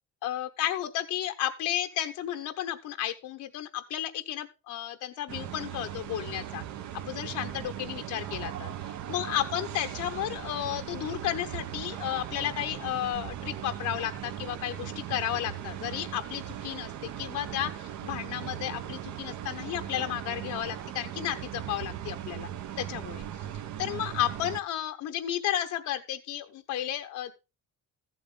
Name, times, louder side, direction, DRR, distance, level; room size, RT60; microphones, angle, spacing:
voice 1, 0.2-6.6 6.9-22.5 22.8-23.2 23.8-27.3, left 12 dB, 85° left, 7 dB, 1.0 m, -33 dB
sound 1, 5.3-24.6, right 11 dB, 75° right, 1.2 m, -38 dB
14.5 x 7.8 x 3.7 m, 0.29 s
cardioid pair, 170°, 29 cm